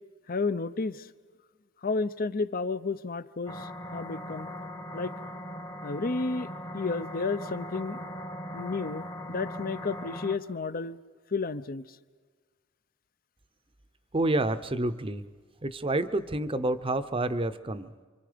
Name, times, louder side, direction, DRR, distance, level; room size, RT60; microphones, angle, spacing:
voice 1, 0.3-1.1 1.8-4.5 4.9-5.1 5.8-6.5 6.7-8.0 8.5-11.0 11.3-11.8, left 4 dB, 45° left, 15 dB, 0.7 m, -31 dB
sound 1, 3.5-10.4, equal, 20° left, 1.1 m, -39 dB
voice 2, 14.1-15.2 15.6-17.9, right 2 dB, 25° right, 11 dB, 0.8 m, -28 dB
29.0 x 25.5 x 5.1 m, 1.5 s
head